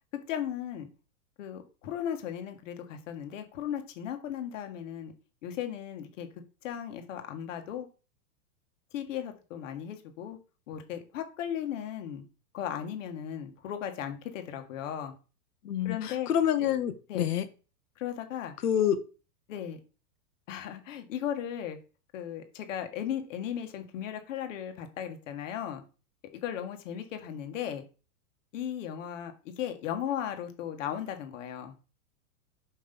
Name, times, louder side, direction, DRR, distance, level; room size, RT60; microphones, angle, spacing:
voice 1, 0.3-0.9 1.4-5.1 5.4-6.3 6.6-7.9 8.9-10.4 10.7-12.2 12.5-15.1 15.8-16.3 17.1-17.3 18.0-18.5 19.5-19.8 20.5-21.8 22.1-25.8 26.3-27.8 28.5-31.7, left 9 dB, 55° left, 6 dB, 1.7 m, -36 dB
voice 2, 15.6-17.4 18.6-19.0, left 10 dB, 75° left, 10 dB, 1.4 m, -27 dB
5.9 x 5.3 x 5.3 m, 0.35 s
supercardioid pair, 165°, 46 cm